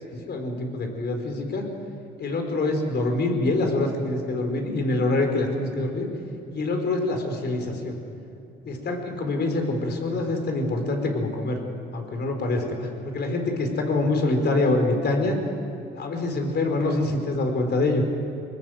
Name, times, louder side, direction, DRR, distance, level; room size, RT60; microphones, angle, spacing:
voice 1, 0.1-1.7 2.2-6.1 6.5-8.0 8.6-11.6 11.9-15.4 15.9-18.0, left 2 dB, 55° left, 4 dB, 4.4 m, -25 dB
24.5 x 19.5 x 7.8 m, 2.7 s
cardioid pair, 90°, 20 cm